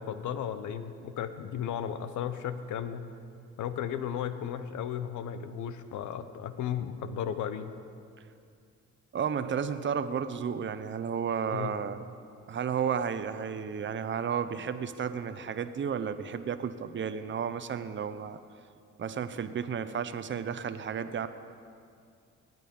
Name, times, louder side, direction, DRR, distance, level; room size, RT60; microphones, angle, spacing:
voice 1, 0.0-3.1 3.6-7.7 11.5-11.7, left 9 dB, 75° left, 11 dB, 0.9 m, -35 dB
voice 2, 9.1-12.0 12.5-18.4 19.0-21.3, right 7 dB, 40° right, 11 dB, 0.8 m, -32 dB
19.0 x 9.3 x 5.4 m, 2.4 s
cardioid pair, 90°, 30 cm